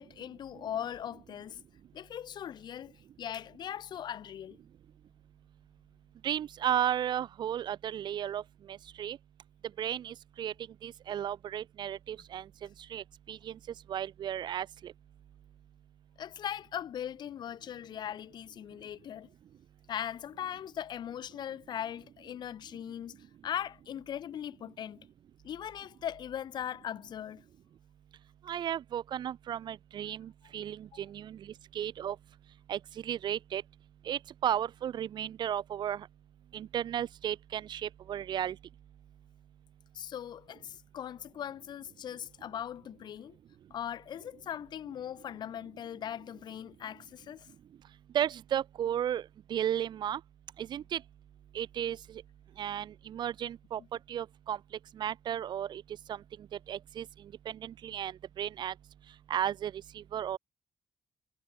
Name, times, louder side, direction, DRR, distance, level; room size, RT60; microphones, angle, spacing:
voice 1, 0.0-1.6 1.9-2.9 3.2-4.6 16.2-19.3 19.9-23.2 23.4-25.0 25.4-27.4 30.9-31.0 39.9-43.4 43.7-47.5 53.8-53.9, left 10 dB, 60° left, 3.0 m, -39 dB
voice 2, 6.2-8.4 8.7-9.2 9.8-10.5 10.8-12.5 12.9-13.6 13.9-14.9 28.5-32.2 32.7-33.6 34.1-36.1 36.5-38.6 48.1-49.2 49.5-50.2 50.6-51.0 51.5-52.0 52.6-53.8 54.1-54.6 55.0-55.8 56.1-56.2 56.7-57.1 57.5-58.7 59.3-60.4, right 10 dB, 60° right, 2.1 m, -34 dB
wide cardioid pair, 170°, 8 cm